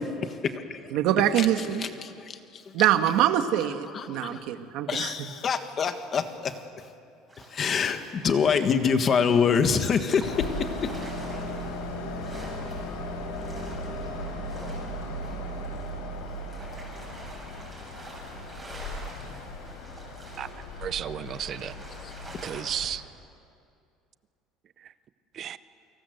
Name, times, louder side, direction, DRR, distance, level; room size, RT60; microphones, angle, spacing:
voice 1, 0.2-0.9 1.4-2.6 3.9-4.4 4.9-6.6 7.5-10.9 22.3-22.4, left 6 dB, 25° left, 8 dB, 1.5 m, -26 dB
voice 2, 0.9-1.8 2.7-5.3, right 11 dB, 55° right, 8 dB, 1.6 m, -24 dB
sound 1, 7.3-22.6, right 1 dB, 10° right, 7.4 m, -47 dB
Train, 10.2-22.9, left 1 dB, 80° left, 4.2 m, -37 dB
voice 3, 20.8-21.9 22.4-23.0 24.8-24.9 25.3-25.6, right 9 dB, 30° right, 15 dB, 0.7 m, -33 dB
29.5 x 25.5 x 8.0 m, 2.4 s
cardioid pair, 170°, 0 cm